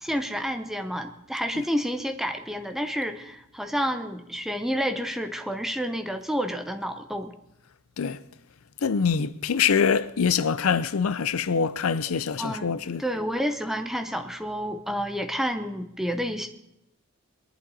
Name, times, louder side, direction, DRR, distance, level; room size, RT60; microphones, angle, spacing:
voice 1, 0.0-7.4 12.4-12.7 13.0-16.5, equal, ahead, 0.8 m, -29 dB
voice 2, 8.8-13.0, left 6 dB, 80° left, 0.5 m, -24 dB
21.0 x 11.0 x 4.1 m
head